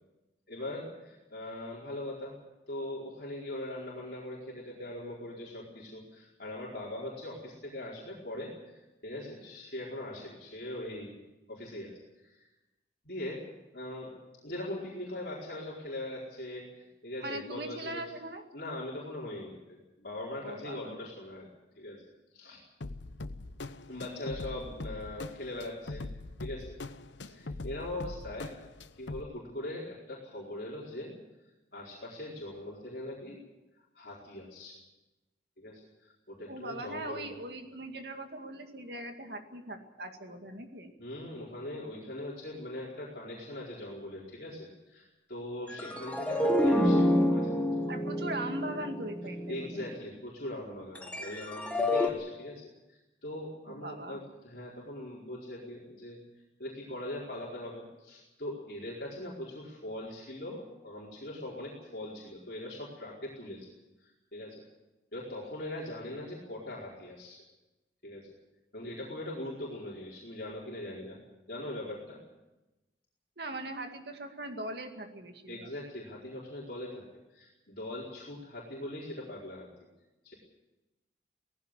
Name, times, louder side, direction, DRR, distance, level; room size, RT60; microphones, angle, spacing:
voice 1, 0.5-2.4 2.7-11.2 11.5-12.5 13.0-13.4 13.7-18.0 18.5-21.5 21.8-22.0 22.3-22.6 23.9-26.1 26.4-26.7 27.3-28.5 28.9-31.1 31.7-33.4 33.9-34.8 35.6-37.3 41.0-47.7 49.5-56.2 56.6-63.7 64.0-64.6 65.1-67.4 68.0-68.3 68.7-71.2 71.5-72.2 75.5-77.0 77.3-79.7 80.2-80.3, left 1 dB, 60° left, -5 dB, 4.6 m, -41 dB
voice 2, 17.2-18.4 20.4-21.0 36.5-40.9 47.9-49.9 53.7-54.2 73.4-75.7, right 1 dB, 65° right, 5 dB, 2.2 m, -40 dB
sound 1, 22.8-29.2, left 2 dB, 85° left, 0.9 m, -42 dB
sound 2, 45.7-50.0 51.0-52.1, left 1 dB, 5° left, 1.6 m, -28 dB
19.0 x 16.0 x 9.9 m, 1.0 s
head